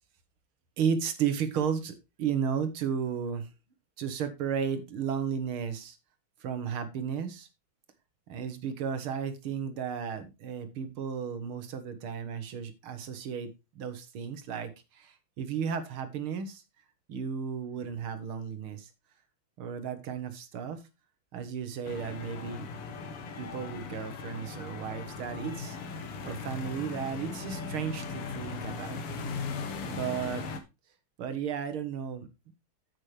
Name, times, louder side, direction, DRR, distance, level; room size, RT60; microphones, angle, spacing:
voice 1, 0.8-3.5 4.0-6.0 6.4-7.5 8.3-13.5 13.8-16.6 17.1-18.9 19.6-20.9 21.3-22.7 23.4-25.8 26.2-29.4 29.9-30.4 31.2-32.3, right 7 dB, 75° right, 10 dB, 2.1 m, -34 dB
sound 1, 21.8-30.6, left 4 dB, 85° left, 2.2 m, -38 dB
9.2 x 8.3 x 3.2 m, 0.25 s
omnidirectional pair, 2.4 m